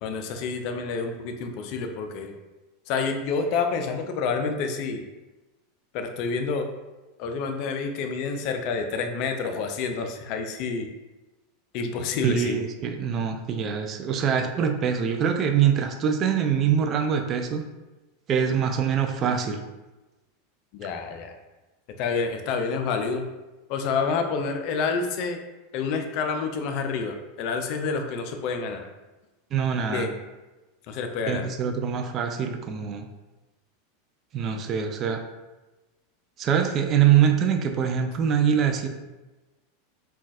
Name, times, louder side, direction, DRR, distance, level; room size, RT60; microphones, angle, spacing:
voice 1, 0.0-2.3 2.9-5.0 5.9-6.7 7.2-10.9 11.7-12.6 20.7-21.3 22.0-23.3 23.7-25.4 25.7-28.9 29.9-30.1 30.9-31.5, left 5 dB, 50° left, 5 dB, 0.3 m, -28 dB
voice 2, 12.2-17.6 18.3-19.6 29.5-30.1 31.3-33.1 34.3-35.2 36.4-38.9, right 8 dB, 35° right, 6 dB, 0.3 m, -24 dB
3.8 x 2.3 x 2.4 m, 1.1 s
figure-of-eight pair, 85°, 0 cm